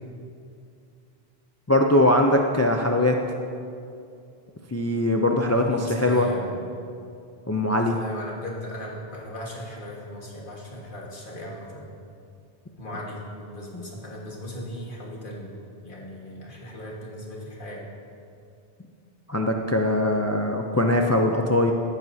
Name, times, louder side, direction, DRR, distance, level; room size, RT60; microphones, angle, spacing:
voice 1, 1.7-3.2 4.7-6.3 7.5-8.0 13.7-13.9 19.3-21.7, left 1 dB, 25° left, 3 dB, 0.3 m, -21 dB
voice 2, 5.5-6.5 7.8-11.9 12.8-15.5 15.8-17.8, left 1 dB, 55° left, -3 dB, 1.9 m, -37 dB
15.5 x 9.1 x 2.8 m, 2.5 s
omnidirectional pair, 1.0 m